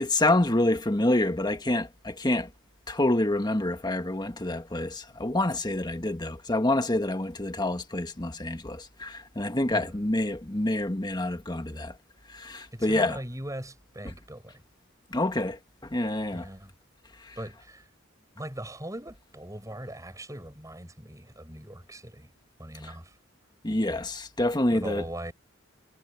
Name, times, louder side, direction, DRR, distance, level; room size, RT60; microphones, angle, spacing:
voice 1, 0.0-2.5 2.9-11.9 12.3-13.2 14.0-14.1 15.1-15.6 15.9-16.5 17.2-17.4 22.8-22.9 23.6-25.0, left 1 dB, 20° left, 1.4 m, -27 dB
voice 2, 12.7-14.6 16.3-16.7 17.4-17.9 18.3-22.3 22.6-23.2 24.7-25.3, right 1 dB, 15° right, 7.0 m, -40 dB
head